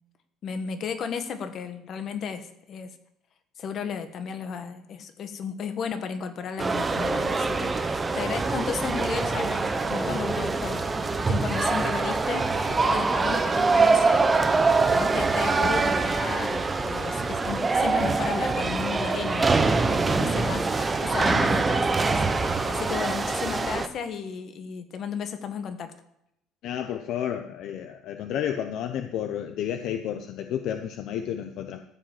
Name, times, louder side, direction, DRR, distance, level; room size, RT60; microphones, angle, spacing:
voice 1, 0.4-2.9 3.6-14.2 14.9-19.5 19.9-25.9, left 6 dB, 40° left, 8 dB, 1.3 m, -34 dB
sound 1, 6.6-23.9, right 3 dB, 15° right, 0.7 m, -24 dB
voice 2, 26.6-31.8, left 9 dB, 55° left, 7 dB, 0.7 m, -31 dB
14.0 x 5.4 x 7.5 m, 0.79 s
cardioid pair, 150°, 0 cm